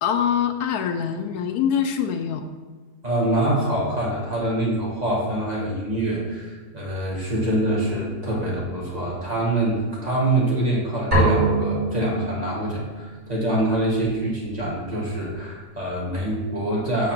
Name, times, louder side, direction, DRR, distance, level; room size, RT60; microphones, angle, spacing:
voice 1, 0.0-2.4, left 8 dB, 80° left, 7 dB, 1.1 m, -24 dB
voice 2, 3.0-17.1, right 1 dB, 25° right, -5 dB, 1.7 m, -25 dB
sound 1, 11.1-12.9, right 2 dB, 65° right, 2.8 m, -22 dB
6.5 x 5.0 x 5.9 m, 1.3 s
omnidirectional pair, 1.7 m